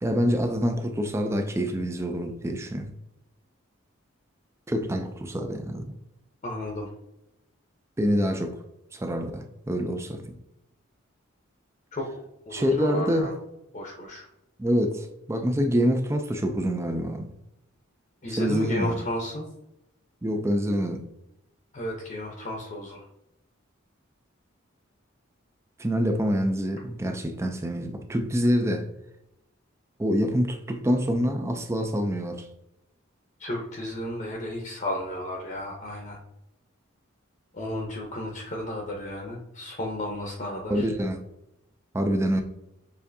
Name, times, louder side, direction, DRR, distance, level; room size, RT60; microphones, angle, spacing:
voice 1, 0.0-2.9 4.7-5.9 8.0-8.6 8.9-10.4 12.5-13.4 14.6-17.3 18.4-19.0 20.2-21.1 25.8-28.9 30.0-32.5 40.7-41.2 41.9-42.4, equal, 15° right, 0.4 m, -26 dB
voice 2, 6.4-6.9 11.9-12.1 12.5-13.3 13.7-14.3 18.2-19.5 21.7-23.0 33.4-36.2 37.5-40.9, left 1 dB, 35° left, 0.7 m, -33 dB
6.8 x 2.6 x 2.6 m
head